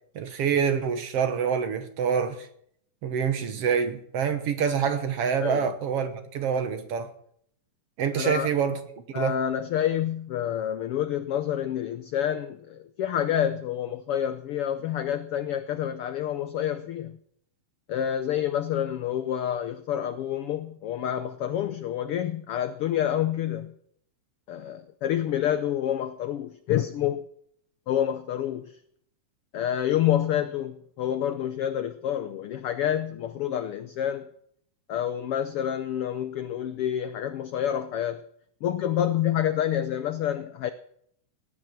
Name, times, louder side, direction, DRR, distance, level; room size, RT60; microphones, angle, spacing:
voice 1, 0.2-2.5 3.0-7.1 8.0-8.8 9.2-9.4, right 7 dB, 60° right, 1.8 m, -26 dB
voice 2, 5.4-5.7 8.1-8.5 9.1-17.2 17.9-23.7 24.5-27.2 27.9-28.8 29.5-34.3 34.9-38.2 38.6-40.7, left 10 dB, 85° left, 1.2 m, -28 dB
18.0 x 9.9 x 6.1 m
omnidirectional pair, 3.5 m